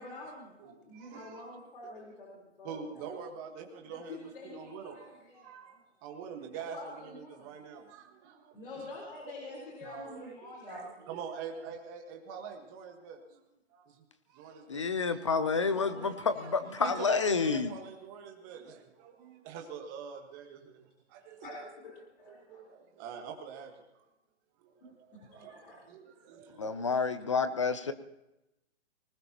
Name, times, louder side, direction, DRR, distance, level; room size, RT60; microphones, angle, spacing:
voice 1, 0.0-3.0 3.9-5.8 6.5-7.5 8.5-10.9 15.5-16.7 21.4-22.6 24.8-24.9 25.3-25.8, left 2 dB, 50° left, -2 dB, 4.1 m, -47 dB
voice 2, 0.6-1.4 2.6-8.8 9.3-13.4 13.7-15.2 16.3-21.6 22.3-24.0 24.6-26.9, right 7 dB, 15° right, 2 dB, 1.5 m, -45 dB
voice 3, 14.7-17.7 26.6-27.9, left 5 dB, 25° left, 12 dB, 0.5 m, -29 dB
19.5 x 19.0 x 2.9 m, 0.92 s
hypercardioid pair, 170°, 35 cm